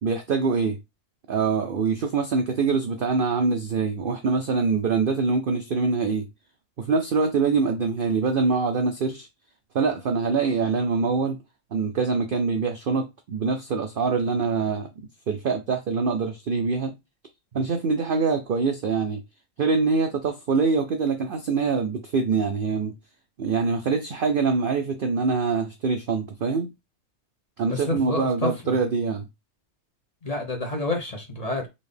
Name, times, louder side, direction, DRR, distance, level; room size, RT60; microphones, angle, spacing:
voice 1, 0.0-0.8 1.3-6.3 6.8-9.3 9.7-11.4 11.7-14.9 15.3-16.9 17.5-19.2 19.6-22.9 23.4-26.7 27.6-29.3, right 4 dB, 65° right, 0.5 m, -24 dB
voice 2, 27.7-28.8 30.2-31.7, left 2 dB, 35° left, 0.8 m, -29 dB
4.1 x 2.7 x 3.3 m
omnidirectional pair, 1.4 m